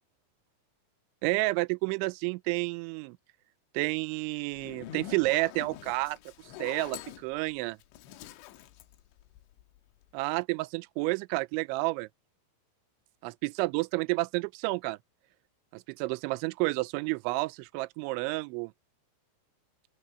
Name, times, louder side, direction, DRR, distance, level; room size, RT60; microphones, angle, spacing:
voice 1, 1.2-3.2 3.7-6.2 6.6-7.8 10.1-12.1 13.2-15.0 15.7-18.7, right 23 dB, 85° right, 2.9 m, -30 dB
Zipper (clothing), 4.5-9.8, left 12 dB, 85° left, 3.5 m, -45 dB
open air
omnidirectional pair, 5.4 m